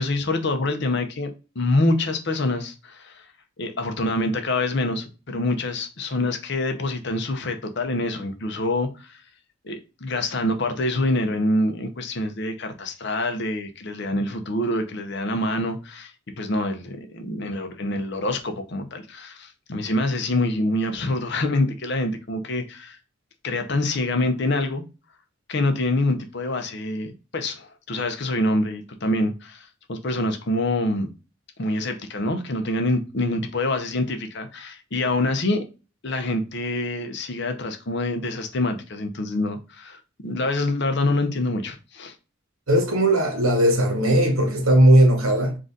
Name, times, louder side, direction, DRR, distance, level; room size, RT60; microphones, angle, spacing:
voice 1, 0.0-3.3 3.6-9.2 9.6-16.1 16.4-23.0 23.4-24.8 25.5-31.1 31.6-35.6 36.0-42.1, left 2 dB, 55° left, 0.7 m, -26 dB
voice 2, 42.7-45.6, right 1 dB, 85° right, 1.1 m, -18 dB
3.8 x 2.5 x 3.8 m
head